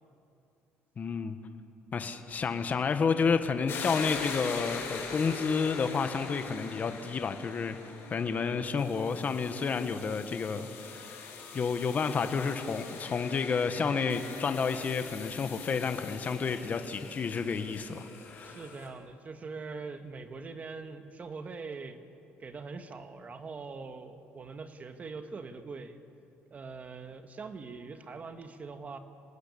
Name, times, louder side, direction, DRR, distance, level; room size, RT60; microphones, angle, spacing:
voice 1, 1.0-1.4 1.9-7.8 8.1-18.6, left 5 dB, 35° left, 8 dB, 1.5 m, -30 dB
sound 1, 3.7-18.9, left 5 dB, 55° left, 6.4 m, -42 dB
voice 2, 18.4-22.0 22.4-26.0 26.5-29.0, right 4 dB, 30° right, 8 dB, 1.7 m, -42 dB
26.0 x 19.0 x 8.6 m, 2.7 s
cardioid pair, 120°, 5 cm